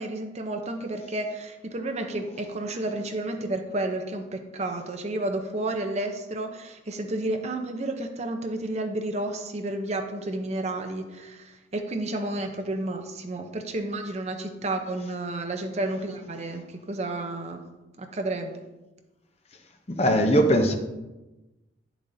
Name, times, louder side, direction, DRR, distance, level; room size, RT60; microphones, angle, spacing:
voice 1, 0.0-17.6 18.0-18.5, right 2 dB, 35° right, 5 dB, 0.7 m, -31 dB
voice 2, 19.9-20.7, equal, 35° left, 5 dB, 0.7 m, -20 dB
9.9 x 7.1 x 2.7 m, 1.0 s
head